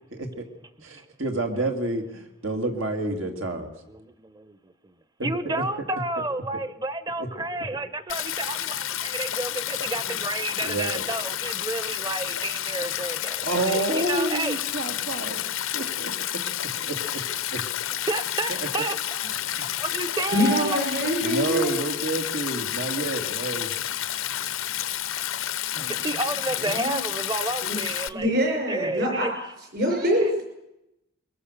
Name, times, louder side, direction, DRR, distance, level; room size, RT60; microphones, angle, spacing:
voice 1, 0.1-0.5 0.8-3.7 5.2-5.6 7.2-7.3 10.0-10.2 10.6-11.1 13.4-15.4 15.7-16.4 16.8-17.2 17.5-17.7 18.5-18.7 19.2-19.6 21.2-23.7, right 2 dB, 75° right, 4 dB, 2.6 m, -29 dB
voice 2, 3.9-4.9 5.2-14.6 18.1-19.3 19.6-21.1 25.9-29.3, right 2 dB, 20° right, 13 dB, 1.0 m, -31 dB
Stream, 8.1-28.1, left 11 dB, 85° left, 0.9 m, -30 dB
voice 3, 20.3-21.8 25.7-25.9 26.6-27.0 27.6-27.8 28.1-29.3 29.7-30.4, equal, 50° right, 3 dB, 5.6 m, -25 dB
23.5 x 22.0 x 6.8 m, 0.88 s
head